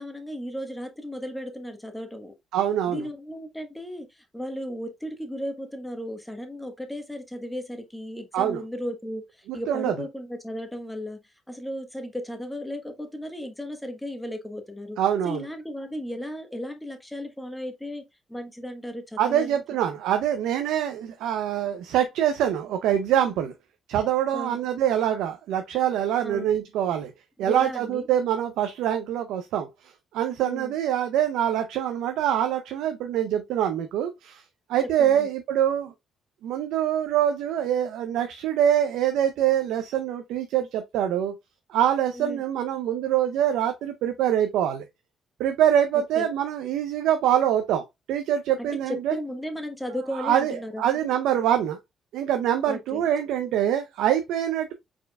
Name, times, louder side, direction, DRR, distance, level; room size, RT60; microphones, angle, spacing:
voice 1, 0.0-2.3 2.9-11.2 11.5-15.0 15.2-19.6 24.3-24.7 26.2-26.5 27.4-28.1 30.4-30.7 35.0-35.3 42.1-42.4 46.1-46.3 48.6-50.8 51.1-51.2 52.7-53.1, equal, 5° left, 1.1 m, -35 dB
voice 2, 2.5-3.0 8.3-8.6 9.5-9.9 15.0-15.5 19.2-23.5 23.9-27.1 27.4-29.7 30.1-34.4 34.7-35.9 36.4-41.3 41.7-44.8 45.4-49.2 50.1-51.8 52.1-54.7, right 10 dB, 90° right, 0.5 m, -24 dB
4.4 x 4.3 x 2.2 m
cardioid pair, 90°, 0 cm